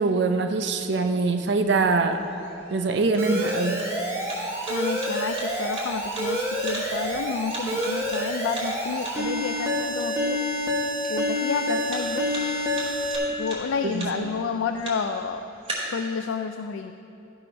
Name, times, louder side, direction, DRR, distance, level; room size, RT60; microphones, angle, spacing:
voice 1, 0.0-2.2 2.7-3.8 13.9-14.3, right 3 dB, 60° right, 6 dB, 0.5 m, -23 dB
sound 1, 0.7-15.7, right 1 dB, 35° right, 2.2 m, -41 dB
Alarm, 3.2-13.2, equal, 15° right, 1.2 m, -28 dB
voice 2, 4.7-10.4 11.1-12.3 13.4-15.5 15.9-17.0, left 5 dB, 85° left, 7 dB, 0.4 m, -30 dB
14.0 x 4.8 x 5.3 m, 2.9 s
head